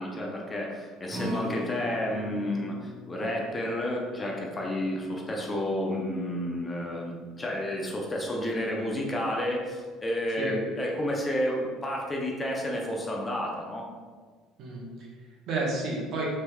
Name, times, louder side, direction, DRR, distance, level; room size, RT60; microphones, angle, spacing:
voice 1, 0.0-13.9, left 1 dB, 25° left, -1 dB, 0.6 m, -31 dB
Acoustic guitar, 1.1-7.4 7.8-7.9 8.3-8.4, left 1 dB, 10° right, 0.8 m, -42 dB
voice 2, 14.6-16.3, right 2 dB, 60° right, -3 dB, 0.9 m, -32 dB
3.3 x 2.9 x 2.3 m, 1.6 s
supercardioid pair, 85°, 0 cm